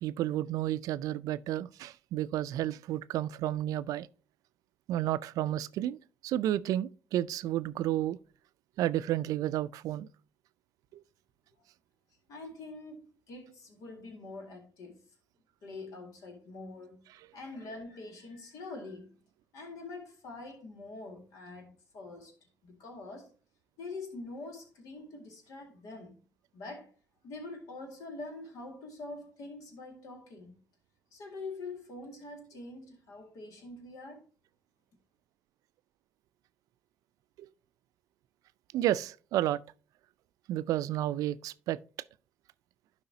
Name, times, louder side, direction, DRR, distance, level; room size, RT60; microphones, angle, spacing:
voice 1, 0.0-4.1 4.9-6.0 6.2-8.2 8.8-10.1 10.9-11.0 37.4-37.5 38.7-39.6 40.5-41.8, right 13 dB, 75° right, 0.3 m, -31 dB
voice 2, 12.3-15.0 15.6-17.0 17.3-19.1 19.5-22.4 22.6-23.3 23.8-26.2 26.5-26.9 27.2-30.6 31.1-34.2, left 3 dB, 75° left, 2.0 m, -45 dB
11.5 x 4.8 x 2.7 m
supercardioid pair, 60°, 6 cm